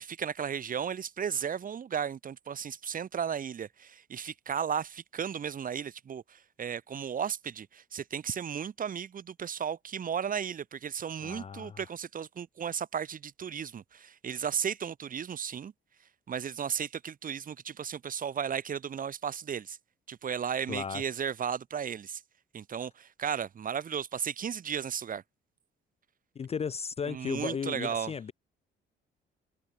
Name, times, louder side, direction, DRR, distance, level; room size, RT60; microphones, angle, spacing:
voice 1, 0.0-15.7 16.3-19.8 20.1-22.2 22.5-25.2 27.1-28.1, right 7 dB, 45° right, 1.0 m, -35 dB
voice 2, 11.2-11.8 20.7-21.0 26.4-28.3, left 6 dB, 30° left, 0.5 m, -35 dB
cardioid pair, 90°, 20 cm